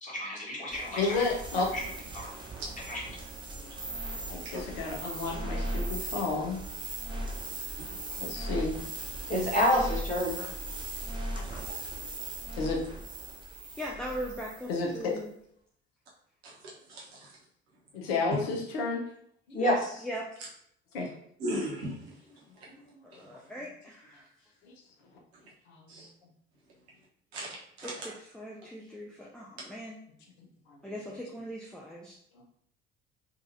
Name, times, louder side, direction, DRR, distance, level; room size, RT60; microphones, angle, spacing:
voice 1, 0.0-1.2 1.7-1.8 2.1-2.3 2.9-3.1 9.3-10.3 19.5-20.0, equal, 25° left, -4 dB, 1.5 m, -29 dB
sound 1, 0.7-14.7, right 2 dB, 15° right, 0.8 m, -38 dB
voice 2, 1.0-1.7 4.3-6.6 8.2-8.8 10.4-10.6 11.3-11.6 12.6-12.8 14.7-15.1 17.9-19.0 20.9-21.1 24.6-24.7 25.7-26.0, left 3 dB, 65° left, 0 dB, 0.8 m, -31 dB
voice 3, 13.8-15.3 20.0-20.3 23.0-24.3 27.8-30.0 30.8-32.1, equal, ahead, -3 dB, 0.4 m, -40 dB
voice 4, 21.4-21.9 25.9-26.1 27.3-27.9, equal, 70° right, -5 dB, 1.1 m, -35 dB
3.8 x 2.5 x 2.6 m, 0.67 s
figure-of-eight pair, 55°, 32 cm